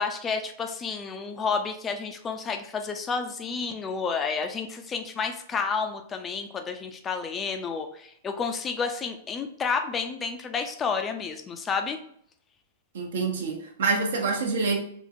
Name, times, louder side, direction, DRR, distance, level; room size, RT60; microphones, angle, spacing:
voice 1, 0.0-12.0, left 5 dB, 20° left, 6 dB, 0.4 m, -30 dB
voice 2, 12.9-14.8, right 4 dB, 60° right, 2 dB, 0.7 m, -26 dB
3.6 x 3.0 x 2.5 m, 0.65 s
figure-of-eight pair, 100°, 0 cm